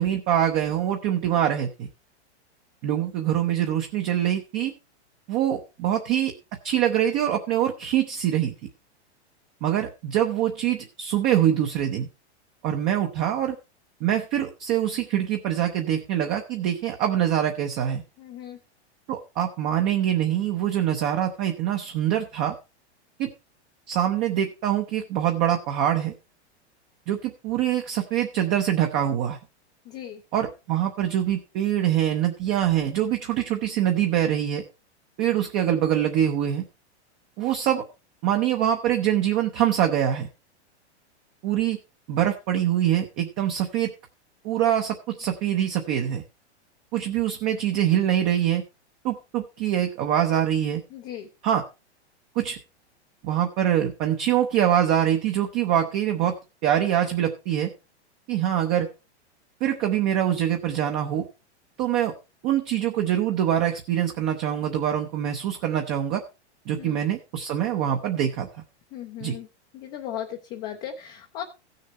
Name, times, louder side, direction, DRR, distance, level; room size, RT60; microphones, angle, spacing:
voice 1, 0.0-1.9 2.8-4.7 5.3-6.3 6.6-8.5 9.6-12.1 12.6-13.6 14.0-18.0 19.1-22.5 23.2-23.3 23.9-26.1 27.1-29.4 30.3-34.6 35.2-36.6 37.4-37.8 38.2-40.3 41.4-41.8 42.1-43.9 44.4-46.2 46.9-48.6 49.0-50.8 51.4-51.6 52.3-52.6 53.2-56.3 56.6-57.7 58.3-58.9 59.6-61.3 61.8-62.1 62.4-66.2 66.7-68.5 69.2-69.4, right 10 dB, 20° right, 4 dB, 0.7 m, -24 dB
voice 2, 18.2-18.6 29.9-30.2 50.9-51.3 66.8-66.9 68.9-69.5 69.7-71.4, left 10 dB, 20° left, 3 dB, 0.6 m, -36 dB
15.0 x 6.7 x 4.2 m, 0.29 s
supercardioid pair, 175°, 34 cm